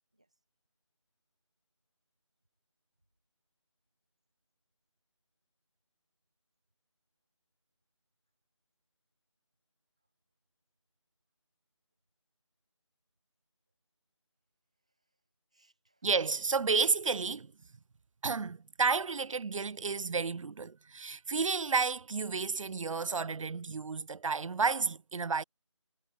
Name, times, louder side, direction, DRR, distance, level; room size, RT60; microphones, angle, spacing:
voice 1, 0.1-0.4 14.7-16.1 21.0-21.1, right 1 dB, 10° right, 0.5 m, -75 dB
voice 2, 16.0-17.5 18.2-25.4, right 5 dB, 85° right, 0.4 m, -31 dB
figure-of-eight pair, 170°, 16 cm